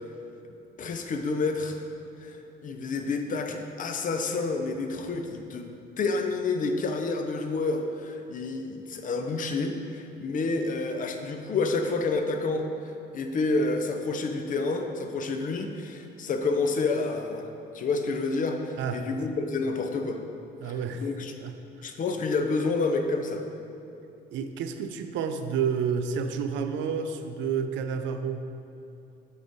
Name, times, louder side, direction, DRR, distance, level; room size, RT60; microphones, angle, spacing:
voice 1, 0.8-1.8 2.2-5.7 6.0-20.2 20.6-21.3 21.8-23.4, left 3 dB, 45° left, 5 dB, 0.6 m, -29 dB
voice 2, 18.8-19.1 20.6-21.1 21.4-21.9 24.3-28.5, right 6 dB, 85° right, 8 dB, 0.5 m, -30 dB
6.2 x 5.1 x 4.0 m, 2.7 s
cardioid pair, 125°, 19 cm